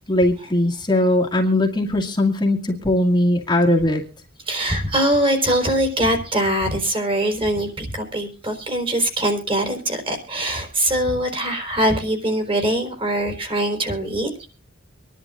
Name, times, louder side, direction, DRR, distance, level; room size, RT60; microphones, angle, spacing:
voice 1, 0.1-4.0, left 1 dB, 20° left, 0 dB, 2.1 m, -19 dB
voice 2, 4.5-14.3, right 1 dB, 25° right, 5 dB, 4.1 m, -22 dB
26.0 x 11.0 x 2.5 m, 0.34 s
head